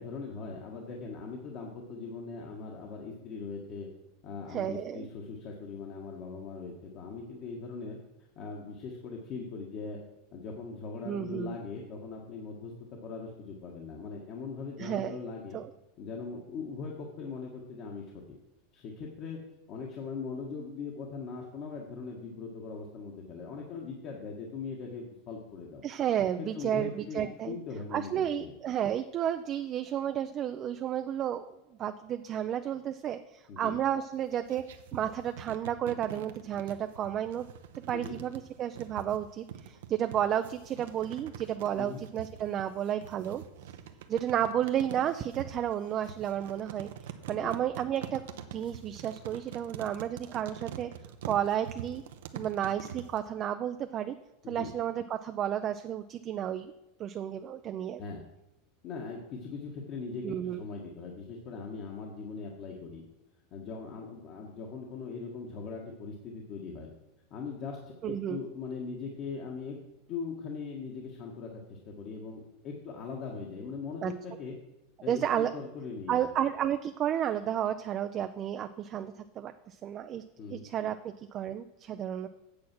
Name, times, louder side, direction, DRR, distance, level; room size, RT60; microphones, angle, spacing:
voice 1, 0.0-3.9 4.2-8.0 8.3-10.0 10.3-12.7 13.0-15.6 16.0-18.3 18.7-19.4 19.7-25.8 26.4-28.5 33.5-33.8 37.9-38.2 41.8-42.0 47.3-47.5 54.4-54.7 58.0-58.2 58.8-63.0 63.5-66.9 67.3-69.8 70.1-74.5 75.0-76.2 80.4-80.7, left 4 dB, 45° left, -1 dB, 1.5 m, -40 dB
voice 2, 4.5-5.1 11.1-11.5 14.8-15.2 15.5-15.7 25.8-27.6 27.9-31.5 31.8-34.6 34.9-37.5 37.9-43.4 44.1-48.2 48.5-50.9 51.3-52.0 52.3-54.1 54.5-56.7 57.0-58.0 60.2-60.6 68.0-68.4 74.0-74.1 75.1-75.5 76.1-80.2 80.5-82.3, right 10 dB, 35° right, 8 dB, 0.4 m, -32 dB
sound 1, 34.1-53.2, right 9 dB, 80° right, 0.9 m, -44 dB
8.6 x 7.2 x 6.1 m, 0.95 s
supercardioid pair, 130°, 0 cm